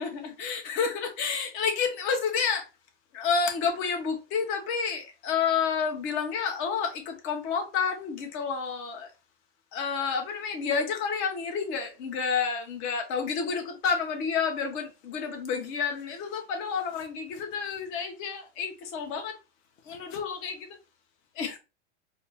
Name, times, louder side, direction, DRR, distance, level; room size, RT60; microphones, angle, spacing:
voice 1, 0.0-2.6 3.1-9.1 9.7-19.4 19.8-20.8 21.3-21.6, left 6 dB, 35° left, 0.8 m, -30 dB
4.0 x 2.0 x 3.3 m
supercardioid pair, 145°, 36 cm